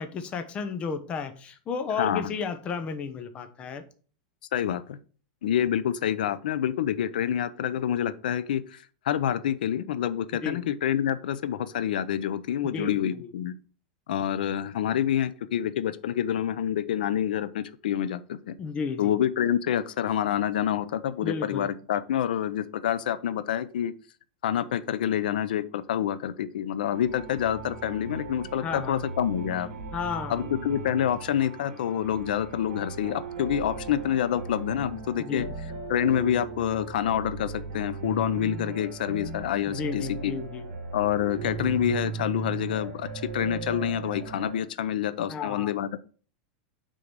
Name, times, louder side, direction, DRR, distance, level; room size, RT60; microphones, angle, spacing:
voice 1, 0.0-3.8 10.4-10.6 12.7-13.3 18.6-19.2 21.2-21.7 28.6-29.0 29.9-30.4 35.2-35.5 39.7-40.7 45.3-45.8, left 5 dB, 25° left, 9 dB, 0.9 m, -33 dB
voice 2, 2.0-2.3 4.5-5.0 5.4-13.5 14.1-18.5 19.0-23.9 24.4-29.7 30.3-35.5 35.9-40.3 40.9-43.1 43.3-46.0, left 10 dB, 90° left, 15 dB, 0.6 m, -27 dB
sound 1, 26.9-44.6, right 4 dB, 70° right, 1.8 m, -37 dB
6.3 x 3.9 x 6.0 m, 0.40 s
supercardioid pair, 155°, 5 cm